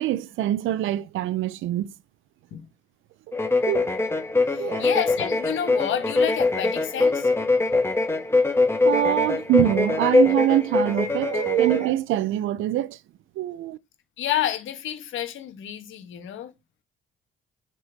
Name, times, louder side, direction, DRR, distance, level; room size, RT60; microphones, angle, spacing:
voice 1, 0.0-1.9 3.3-3.4 3.7-3.9 4.6-4.9 8.8-13.0 13.4-13.8, right 13 dB, 85° right, 0.6 m, -24 dB
sound 1, 3.3-11.9, left 3 dB, 10° left, 1.4 m, -23 dB
voice 2, 4.5-7.3 14.2-16.5, left 10 dB, 80° left, 1.5 m, -29 dB
7.9 x 4.4 x 5.1 m
cardioid pair, 90°, 20 cm